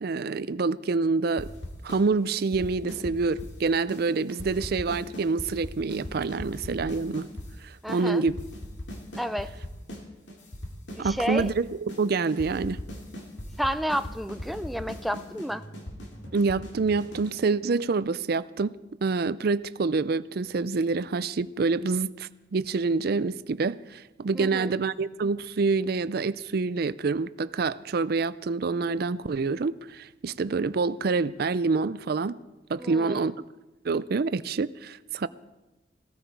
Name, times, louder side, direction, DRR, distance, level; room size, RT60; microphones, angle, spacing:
voice 1, 0.0-1.5 1.8-7.3 7.6-8.4 11.0-12.8 16.3-32.4 32.7-33.4 33.8-35.3, right 4 dB, 55° right, 0.4 m, -27 dB
sound 1, 1.4-2.0 2.3-3.6 3.9-4.0 4.3-7.5 7.9-8.0 8.3-10.0 10.3-11.6 11.9-12.0 12.3-17.4, left 1 dB, 70° left, 2.4 m, -39 dB
voice 2, 7.8-8.2 9.2-9.5 10.9-11.5 13.6-15.6 24.4-24.7 32.8-33.3, equal, ahead, 0.4 m, -31 dB
17.0 x 14.0 x 4.6 m
head